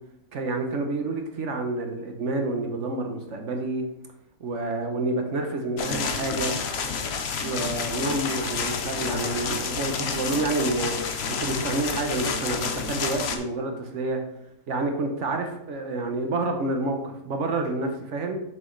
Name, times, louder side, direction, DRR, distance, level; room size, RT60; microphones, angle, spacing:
voice 1, 0.3-3.8 4.4-6.6 7.4-11.0 11.3-14.2 14.7-18.4, right 2 dB, 50° right, 4 dB, 1.0 m, -28 dB
sound 1, 5.8-13.4, left 5 dB, 70° left, 0.6 m, -29 dB
7.2 x 6.1 x 3.2 m, 0.83 s
omnidirectional pair, 2.0 m